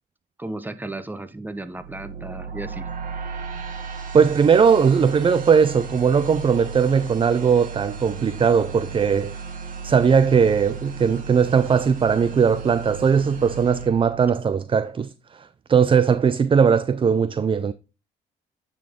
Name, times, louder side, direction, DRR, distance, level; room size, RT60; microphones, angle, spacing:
voice 1, 0.4-2.9, right 2 dB, 10° right, 0.8 m, -34 dB
sound 1, 1.7-14.8, right 4 dB, 45° right, 1.9 m, -35 dB
voice 2, 4.1-9.3 9.8-17.7, right 6 dB, 25° right, 0.4 m, -19 dB
9.2 x 4.1 x 3.7 m
cardioid pair, 90°, 20 cm